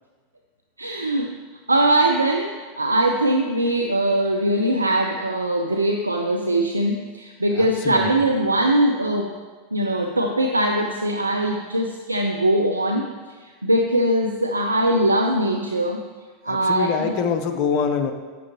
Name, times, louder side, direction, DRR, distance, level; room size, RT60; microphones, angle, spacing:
voice 1, 0.8-1.3 1.7-9.3 9.7-13.1 13.4-16.0 16.4-17.1, right 1 dB, 85° right, 3 dB, 0.4 m, -21 dB
voice 2, 7.6-8.1 16.5-18.1, left 6 dB, 45° left, 7 dB, 0.8 m, -24 dB
11.0 x 7.7 x 2.9 m, 1.4 s
figure-of-eight pair, 85°, 0 cm